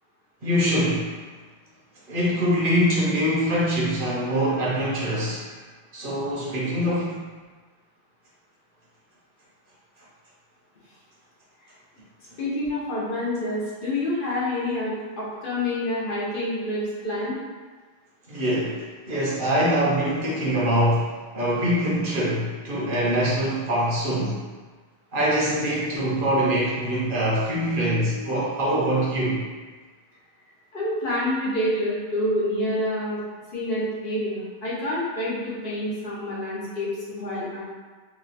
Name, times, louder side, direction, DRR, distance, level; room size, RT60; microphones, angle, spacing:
voice 1, 0.4-1.2 2.1-5.5 5.9-7.2 18.3-21.1 21.3-24.4 25.1-29.4, equal, 60° right, -5 dB, 0.9 m, -24 dB
voice 2, 12.4-17.4 30.7-33.2 33.5-37.6, left 1 dB, 60° left, -7 dB, 1.0 m, -27 dB
2.9 x 2.2 x 4.0 m, 1.4 s
omnidirectional pair, 1.1 m